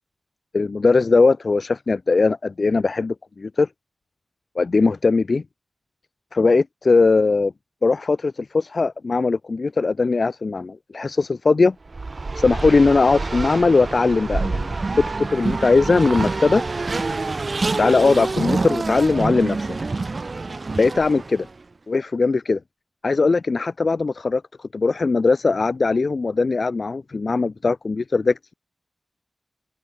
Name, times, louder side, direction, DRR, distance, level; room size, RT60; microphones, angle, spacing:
voice 1, 0.5-3.7 4.6-5.4 6.3-7.5 7.8-11.7 12.4-16.6 17.8-19.7 20.8-21.5 21.9-22.6 23.0-28.5, left 4 dB, 60° left, 0.7 m, -20 dB
Race car auto racing, 11.8-21.5, right 3 dB, 50° right, 0.8 m, -26 dB
open air
cardioid pair, 55°, 0 cm